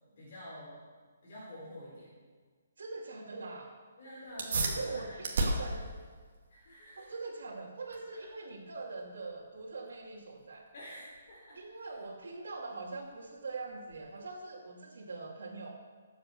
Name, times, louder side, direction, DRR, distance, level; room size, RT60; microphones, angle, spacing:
voice 1, 0.2-0.8 1.2-2.1 4.0-5.9 6.5-7.1 8.1-8.3 10.7-11.9, equal, 35° left, -7 dB, 3.9 m, -49 dB
voice 2, 2.8-3.7 4.6-5.8 7.0-10.6 11.5-15.7, right 3 dB, 65° right, -6 dB, 2.7 m, -42 dB
sound 1, 4.3-14.3, right 2 dB, 40° right, 2.1 m, -39 dB
16.5 x 7.8 x 6.9 m, 1.5 s
hypercardioid pair, 180°, 0 cm